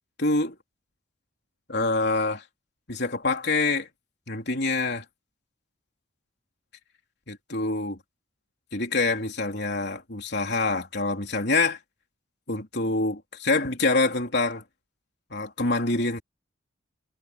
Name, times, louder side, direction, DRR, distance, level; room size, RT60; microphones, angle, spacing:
voice 1, 0.2-0.6 1.7-2.4 2.9-3.9 4.3-5.0 7.3-8.0 8.7-11.8 12.5-14.6 15.3-16.2, left 3 dB, 55° left, 3.8 m, -26 dB
head